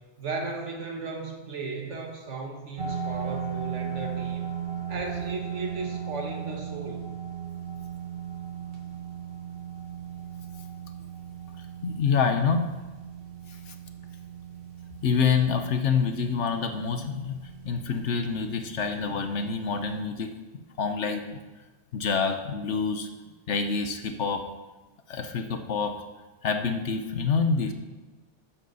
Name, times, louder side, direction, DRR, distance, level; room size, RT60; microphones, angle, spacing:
voice 1, 0.2-4.4 4.9-7.1, right 3 dB, 85° right, 2 dB, 1.8 m, -35 dB
sound 1, 2.8-20.0, right 8 dB, 50° right, 1.5 m, -37 dB
voice 2, 11.8-12.7 13.5-13.7 15.0-20.3 20.5-21.4 21.9-23.1 23.5-24.4 25.1-26.0 26.4-27.7, left 5 dB, 75° left, 7 dB, 1.2 m, -27 dB
13.5 x 10.0 x 4.1 m, 1.2 s
omnidirectional pair, 1.2 m